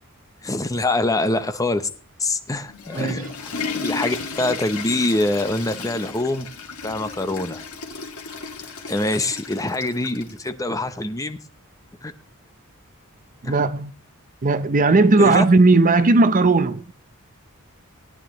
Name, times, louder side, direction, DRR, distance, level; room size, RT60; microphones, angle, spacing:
voice 1, 0.4-1.9 2.2-3.5 3.7-6.5 6.8-7.6 8.9-11.4 12.0-12.1 13.4-13.6 15.2-15.4, left 2 dB, 15° left, 0.8 m, -24 dB
Water / Toilet flush, 2.5-10.4, left 4 dB, 75° left, 1.9 m, -33 dB
voice 2, 2.9-3.3 13.4-13.9 14.4-16.8, right 3 dB, 40° right, 0.6 m, -17 dB
18.5 x 9.6 x 3.0 m
head